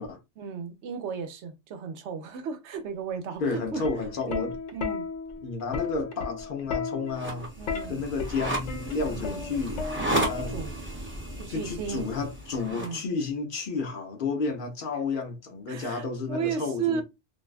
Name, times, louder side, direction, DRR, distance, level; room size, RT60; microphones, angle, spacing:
voice 1, 0.4-3.8 4.3-5.1 7.6-8.0 9.1-9.4 10.4-10.8 11.4-12.1 12.7-13.0 15.7-17.0, right 6 dB, 80° right, 0.9 m, -34 dB
voice 2, 3.4-4.5 5.4-7.5 7.9-9.9 10.1-10.5 11.5-17.0, left 4 dB, 60° left, 0.7 m, -31 dB
Plucked string instrument, 3.6-10.9 12.0-12.3, left 5 dB, 90° left, 0.9 m, -35 dB
sound 1, 7.1-13.0, right 1 dB, 10° right, 0.8 m, -33 dB
2.6 x 2.1 x 2.3 m
omnidirectional pair, 1.1 m